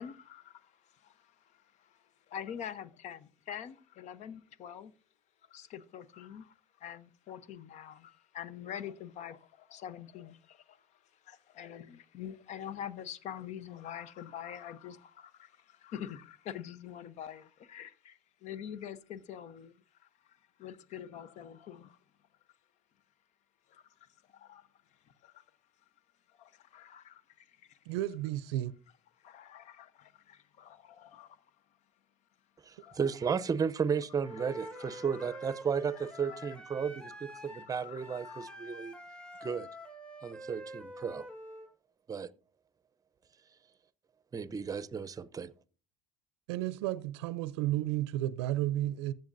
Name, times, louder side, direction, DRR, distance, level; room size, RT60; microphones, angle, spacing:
voice 1, 0.0-4.9 5.5-22.0 23.7-25.4 26.7-27.1 29.2-31.4 32.8-33.1 34.4-34.5 34.7-35.4 36.0-36.5 37.7-38.8 39.2-39.3, left 9 dB, 60° left, 0.8 m, -46 dB
voice 2, 27.9-28.7 46.5-49.1, right 14 dB, 85° right, 0.5 m, -32 dB
voice 3, 32.6-38.9 39.4-39.7 40.2-41.3 42.1-42.3 44.3-45.5, right 6 dB, 25° right, 0.7 m, -34 dB
Wind instrument woodwind instrument, 34.2-41.7, equal, 5° left, 1.5 m, -47 dB
14.5 x 7.7 x 2.6 m
supercardioid pair, 85°, 14 cm